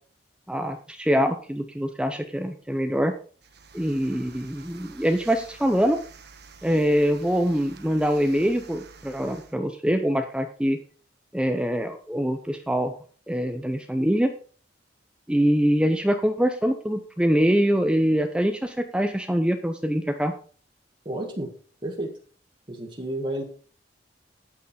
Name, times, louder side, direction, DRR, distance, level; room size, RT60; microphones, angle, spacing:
voice 1, 0.5-3.1 3.7-6.0 6.6-10.8 11.3-12.9 13.3-14.3 15.3-20.3, equal, 5° right, 6 dB, 0.6 m, -24 dB
sound 1, 3.4-9.6, right 5 dB, 60° right, 1.3 m, -49 dB
voice 2, 21.0-21.5 21.8-22.1 22.7-23.4, right 1 dB, 25° right, 0 dB, 1.6 m, -31 dB
9.1 x 8.7 x 4.3 m, 0.41 s
head